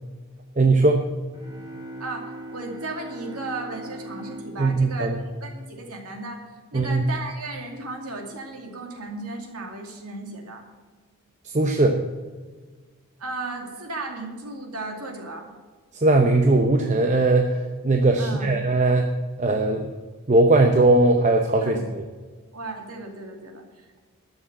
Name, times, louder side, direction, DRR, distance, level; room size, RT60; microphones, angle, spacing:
voice 1, 0.6-1.0 4.6-5.2 6.7-7.0 11.5-12.0 16.0-19.1 19.4-19.9 20.3-22.0, right 2 dB, 35° right, 3 dB, 0.8 m, -19 dB
sound 1, 1.3-6.0, right 1 dB, 15° right, 3.1 m, -40 dB
voice 2, 2.0-6.4 6.7-10.6 13.2-15.5 18.2-18.5 21.6-21.9 22.5-24.0, right 2 dB, 90° right, 2 dB, 2.5 m, -35 dB
12.5 x 6.4 x 7.8 m, 1.4 s
head